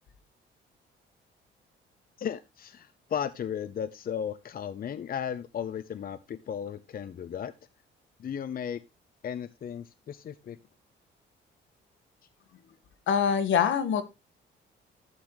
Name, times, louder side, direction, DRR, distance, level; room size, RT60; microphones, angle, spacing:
voice 1, 2.2-7.5 8.2-8.8 9.2-10.6, left 8 dB, 50° left, 15 dB, 0.7 m, -35 dB
voice 2, 13.1-14.0, left 7 dB, 75° left, 12 dB, 1.6 m, -24 dB
12.0 x 8.7 x 3.0 m, 0.23 s
cardioid pair, 90°, 20 cm